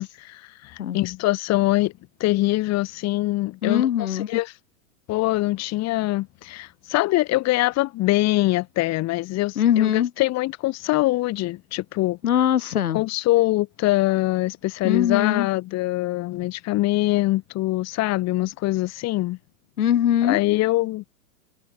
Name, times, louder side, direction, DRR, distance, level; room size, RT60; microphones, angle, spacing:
voice 1, 0.0-1.9 2.2-4.5 5.1-12.2 12.9-19.4 20.2-21.0, left 18 dB, 35° left, 4.1 m, -23 dB
voice 2, 3.6-4.3 9.6-10.1 12.2-13.0 14.8-15.5 19.8-20.4, left 10 dB, 85° left, 3.6 m, -21 dB
hypercardioid pair, 125°, 43 cm